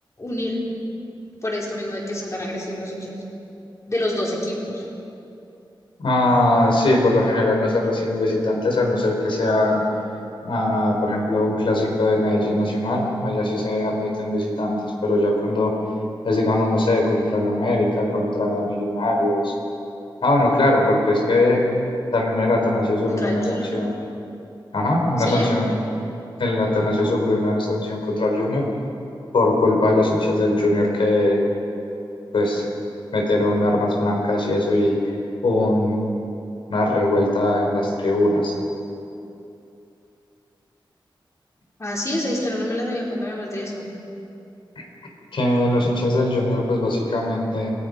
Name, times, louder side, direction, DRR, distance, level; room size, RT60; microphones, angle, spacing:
voice 1, 0.2-0.6 1.4-3.1 3.9-4.9 23.1-23.8 25.2-25.5 41.8-43.9, left 1 dB, 35° left, -3 dB, 4.6 m, -27 dB
voice 2, 6.0-9.8 10.4-15.7 16.2-19.5 20.2-21.6 22.1-23.9 24.7-25.7 26.4-28.7 29.3-31.4 32.3-32.7 33.1-35.0 35.4-36.1 36.7-38.5 44.8-44.9 45.3-47.7, left 1 dB, 90° left, 0 dB, 4.1 m, -20 dB
27.0 x 19.0 x 5.3 m, 2.8 s
wide cardioid pair, 115°, 9 cm